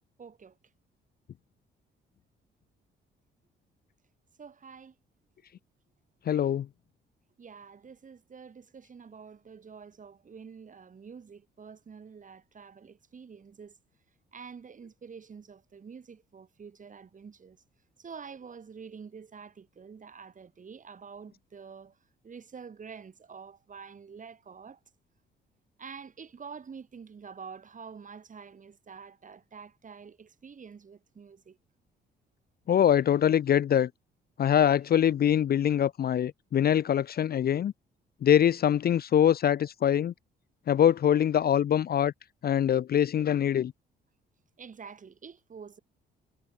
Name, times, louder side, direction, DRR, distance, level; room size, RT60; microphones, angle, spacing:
voice 1, 0.2-0.6 4.4-5.0 7.4-13.8 14.3-17.6 18.0-22.0 22.2-24.8 25.8-31.6 44.6-45.8, right 6 dB, 40° right, 4.1 m, -47 dB
voice 2, 6.3-6.7 32.7-33.9 34.4-37.7 38.2-40.1 40.7-42.1 42.4-43.7, left 9 dB, 50° left, 0.7 m, -23 dB
cardioid pair, 90°, 20 cm